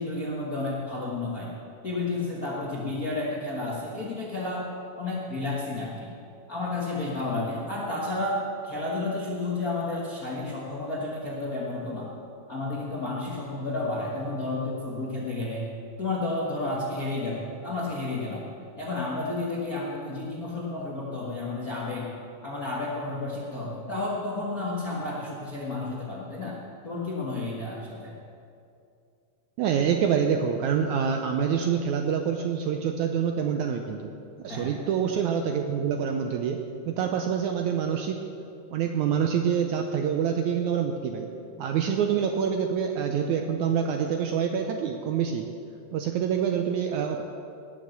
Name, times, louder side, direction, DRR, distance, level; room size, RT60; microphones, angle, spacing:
voice 1, 0.0-1.5 1.8-4.7 5.0-6.1 6.5-12.1 12.5-15.7 16.0-18.5 18.8-22.1 22.4-28.1 34.5-34.9, left 2 dB, 55° left, -5 dB, 0.9 m, -31 dB
voice 2, 29.6-34.1 34.4-36.6 36.9-38.2 38.7-41.3 41.6-45.5 45.9-47.2, right 7 dB, 80° right, 4 dB, 1.7 m, -26 dB
18.0 x 7.0 x 6.6 m, 2.6 s
omnidirectional pair, 4.0 m